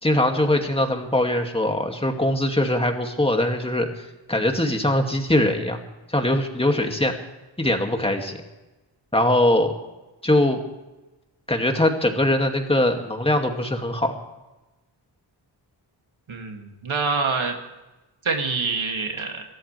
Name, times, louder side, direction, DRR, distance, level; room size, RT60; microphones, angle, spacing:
voice 1, 0.0-5.8 6.1-7.2 7.6-8.4 9.1-9.7 10.2-10.6 11.5-14.1, left 1 dB, 10° left, 3 dB, 2.3 m, -22 dB
voice 2, 16.3-17.6 18.2-19.4, right 4 dB, 80° right, 2 dB, 2.6 m, -26 dB
27.0 x 13.5 x 3.4 m, 1.1 s
wide cardioid pair, 85°, 47 cm